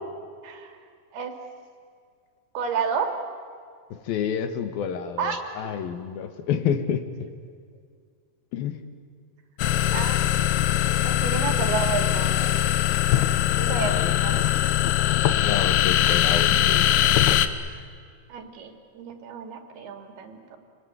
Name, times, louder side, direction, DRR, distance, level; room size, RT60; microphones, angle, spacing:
voice 1, 0.4-0.8 1.1-1.4 2.5-3.1 5.2-5.7 9.9-10.2 11.0-12.6 13.6-14.5 15.5-15.6 18.3-20.6, right 6 dB, 80° right, 6 dB, 4.3 m, -31 dB
voice 2, 3.9-7.1 8.5-8.8 13.8-14.2 15.4-16.9, left 8 dB, 70° left, 9 dB, 3.0 m, -29 dB
sound 1, 9.6-17.5, left 12 dB, 90° left, 3.0 m, -21 dB
28.5 x 20.5 x 9.5 m, 2.1 s
omnidirectional pair, 4.5 m